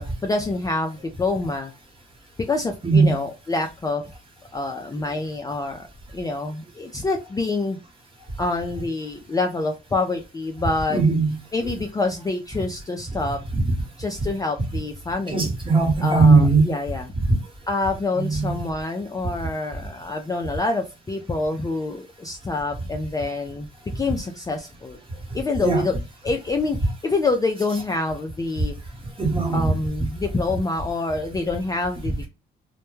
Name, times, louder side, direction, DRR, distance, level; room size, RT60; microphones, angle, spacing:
voice 1, 0.0-1.7 2.4-4.0 4.5-5.9 6.1-7.8 8.4-11.0 11.5-13.4 14.0-15.5 16.0-17.1 17.7-23.7 23.9-25.0 25.3-25.9 26.2-28.7 29.5-32.3, left 3 dB, 20° left, 0.3 m, -26 dB
voice 2, 2.8-3.2 10.9-11.3 15.3-16.7 17.2-17.3 18.2-18.6 25.6-25.8 29.2-29.7, right 4 dB, 25° right, 1.1 m, -18 dB
2.1 x 2.1 x 3.0 m
cardioid pair, 90°, 20 cm